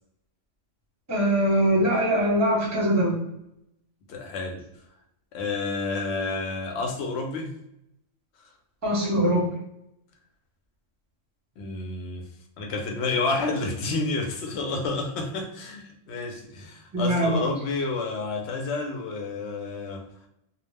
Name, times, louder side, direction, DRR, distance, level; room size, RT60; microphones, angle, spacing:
voice 1, 1.1-3.2 8.8-9.5 16.9-17.4, equal, 15° right, 0.7 m, -22 dB
voice 2, 4.1-4.6 5.3-7.5 11.6-12.2 12.6-20.1, left 3 dB, 65° left, 0.7 m, -30 dB
2.3 x 2.0 x 3.2 m
omnidirectional pair, 1.4 m